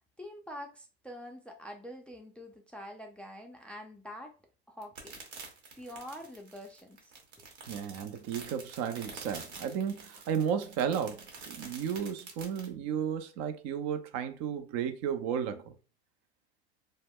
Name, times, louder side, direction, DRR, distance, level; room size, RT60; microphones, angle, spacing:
voice 1, 0.2-4.3 4.7-5.2 5.8-7.1, equal, 5° left, 0.4 m, -45 dB
sound 1, 4.8-12.7, right 4 dB, 80° right, 1.0 m, -47 dB
voice 2, 7.7-15.7, right 8 dB, 55° right, 0.5 m, -33 dB
2.1 x 2.0 x 3.5 m
hypercardioid pair, 85°, 32 cm